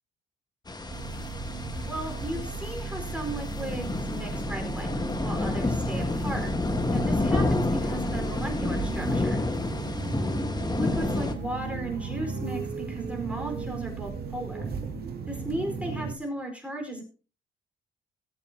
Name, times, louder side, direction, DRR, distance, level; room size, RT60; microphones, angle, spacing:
sound 1, 0.7-11.3, left 2 dB, 20° left, 1.6 m, -29 dB
sound 2, 0.9-16.1, right 4 dB, 50° right, 2.2 m, -36 dB
voice 1, 1.8-6.5 6.9-9.4 10.7-12.6 12.9-14.7 15.3-17.0, right 1 dB, 5° right, 1 dB, 4.7 m, -35 dB
20.5 x 7.9 x 2.9 m, 0.37 s
cardioid pair, 90°, 20 cm